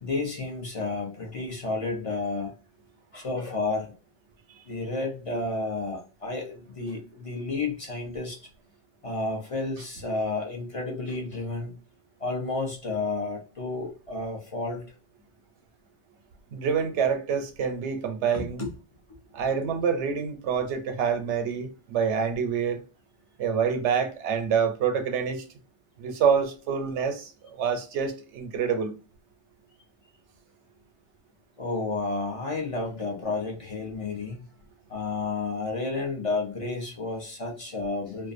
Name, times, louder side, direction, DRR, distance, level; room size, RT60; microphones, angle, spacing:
voice 1, 0.0-2.5 3.1-3.9 4.7-8.4 9.0-11.8 12.2-14.8 18.3-18.7 31.6-34.5 34.9-38.3, left 3 dB, 40° left, 0.6 m, -31 dB
voice 2, 16.5-18.6 19.3-22.8 23.4-25.4 26.0-28.9, right 6 dB, 90° right, 0.9 m, -27 dB
2.5 x 2.1 x 2.4 m
omnidirectional pair, 1.1 m